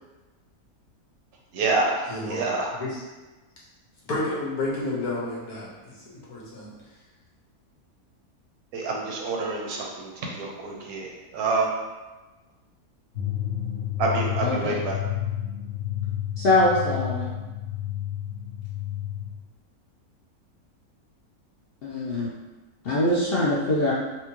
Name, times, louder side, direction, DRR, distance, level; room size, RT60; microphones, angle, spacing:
voice 1, 1.5-2.7 8.7-11.7 14.0-15.0, right 3 dB, 75° right, -1 dB, 1.1 m, -27 dB
voice 2, 2.1-2.4 2.7-3.0 4.1-6.7, left 2 dB, 85° left, -6 dB, 1.5 m, -31 dB
sound 1, 13.1-19.3, left 11 dB, 45° left, 1.2 m, -31 dB
voice 3, 14.4-14.8 16.4-17.3 21.8-22.3 22.8-23.9, left 2 dB, 65° left, -6 dB, 0.6 m, -23 dB
4.3 x 2.3 x 2.9 m, 1.2 s
omnidirectional pair, 1.6 m